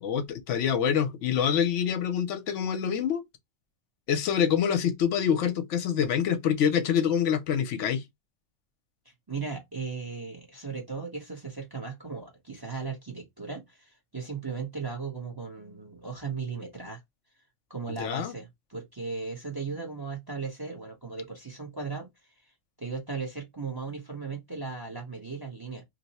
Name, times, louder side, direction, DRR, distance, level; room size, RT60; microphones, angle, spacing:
voice 1, 0.0-3.2 4.1-8.0 18.0-18.3, left 8 dB, 75° left, 1.0 m, -26 dB
voice 2, 9.3-17.0 17.7-22.3 22.8-25.8, right 4 dB, 20° right, 0.8 m, -37 dB
2.8 x 2.0 x 4.0 m
omnidirectional pair, 1.3 m